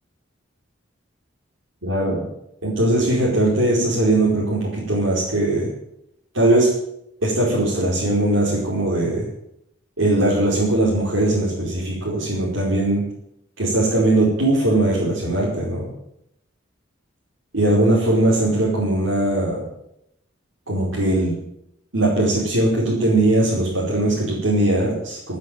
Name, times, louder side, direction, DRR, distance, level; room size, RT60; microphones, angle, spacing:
voice 1, 1.8-2.2 2.6-5.7 6.3-6.7 7.2-9.3 10.0-13.0 13.6-15.8 17.5-19.6 20.7-21.4 21.9-25.4, right 1 dB, 80° right, -7 dB, 5.0 m, -20 dB
13.0 x 9.4 x 9.4 m, 0.80 s
head